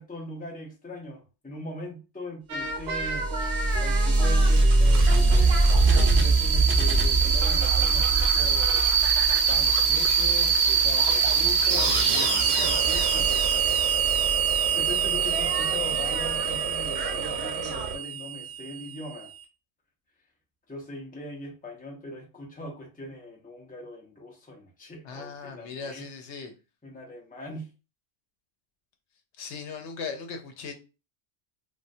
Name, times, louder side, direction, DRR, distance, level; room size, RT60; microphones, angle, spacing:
voice 1, 0.0-3.3 3.8-8.9 9.5-13.8 14.7-19.3 20.7-26.0 26.8-27.7, left 1 dB, 10° left, 0.6 m, -40 dB
sound 1, 2.5-10.6 10.9-18.0, right 3 dB, 70° right, 0.9 m, -33 dB
sound 2, 2.9-19.2, right 4 dB, 50° right, 0.7 m, -23 dB
voice 2, 25.0-26.5 29.4-30.7, left 5 dB, 80° left, 0.9 m, -38 dB
3.6 x 2.2 x 2.6 m
omnidirectional pair, 1.2 m